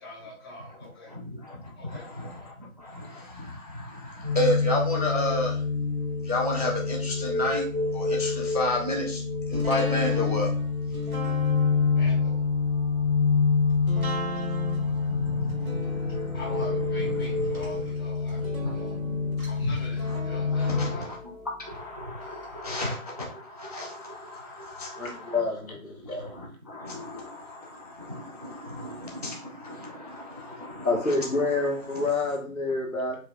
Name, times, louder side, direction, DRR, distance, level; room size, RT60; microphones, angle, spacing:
voice 1, 0.0-1.1 1.7-2.1 11.9-12.4 16.3-18.9 19.5-21.1, left 1 dB, 15° left, -8 dB, 1.8 m, -43 dB
voice 2, 1.1-5.6 6.2-7.7 7.9-10.5 10.9-11.0 13.6-17.8 18.3-19.0 19.6-19.7 20.0-21.3 21.6-25.4 26.0-32.3, left 1 dB, 30° right, -1 dB, 0.5 m, -33 dB
sound 1, 4.2-20.8, left 4 dB, 50° right, 2.1 m, -27 dB
sound 2, 9.5-22.5 22.8-22.9, right 1 dB, 90° right, 1.8 m, -38 dB
voice 3, 25.0-26.3 30.8-33.2, left 3 dB, 80° left, 1 dB, 1.5 m, -28 dB
4.7 x 3.3 x 2.3 m, 0.40 s
figure-of-eight pair, 150°, 42 cm